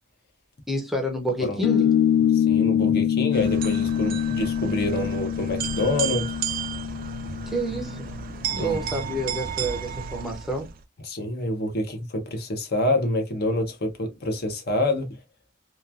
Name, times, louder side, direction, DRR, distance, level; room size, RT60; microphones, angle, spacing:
voice 1, 0.7-1.9 7.5-8.1 8.5-10.7, right 1 dB, ahead, 0.6 m, -29 dB
sound 1, 1.6-8.6, left 9 dB, 90° left, 0.4 m, -24 dB
voice 2, 2.3-6.3 8.6-8.8 11.1-15.2, left 1 dB, 55° left, 0.8 m, -27 dB
sound 2, 3.3-10.8, right 7 dB, 50° right, 0.4 m, -33 dB
2.9 x 2.3 x 2.3 m
head